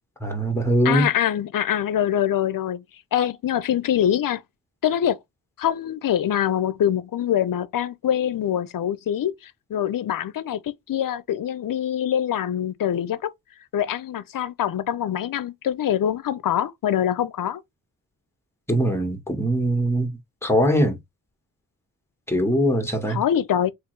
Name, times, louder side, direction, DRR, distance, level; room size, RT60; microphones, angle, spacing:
voice 1, 0.2-1.1 18.7-20.1 20.4-21.0 22.3-23.2, right 1 dB, 5° left, 1.4 m, -21 dB
voice 2, 0.8-2.8 3.1-4.4 4.8-5.2 5.6-13.3 13.7-17.6 23.1-23.7, left 10 dB, 65° left, 0.6 m, -24 dB
3.5 x 3.0 x 3.2 m
cardioid pair, 75°, 35 cm